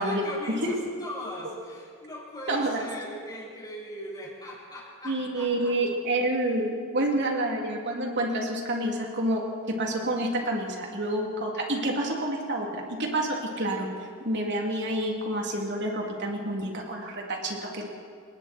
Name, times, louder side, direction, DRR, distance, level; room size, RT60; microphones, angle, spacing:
voice 1, 0.0-5.7, left 1 dB, 20° left, -5 dB, 7.3 m, -39 dB
voice 2, 2.5-2.9 5.0-9.4 9.7-13.9 14.2-17.9, right 1 dB, 55° right, 0 dB, 3.5 m, -28 dB
29.5 x 19.0 x 4.6 m, 2.1 s
head